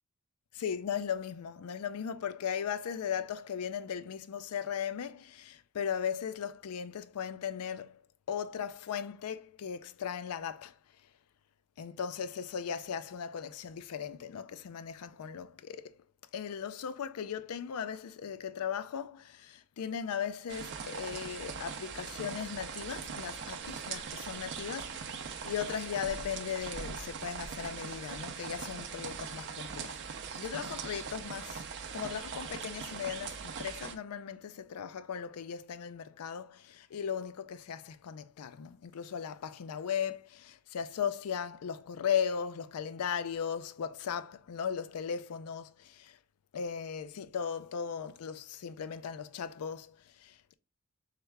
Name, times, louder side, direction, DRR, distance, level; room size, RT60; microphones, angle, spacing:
voice 1, 0.5-8.0 8.3-10.8 11.8-15.9 16.3-30.0 30.4-46.2 46.5-50.6, left 7 dB, 80° left, 0.4 m, -37 dB
sound 1, 20.5-33.9, right 6 dB, 50° right, 0.5 m, -41 dB
3.5 x 3.3 x 3.3 m
head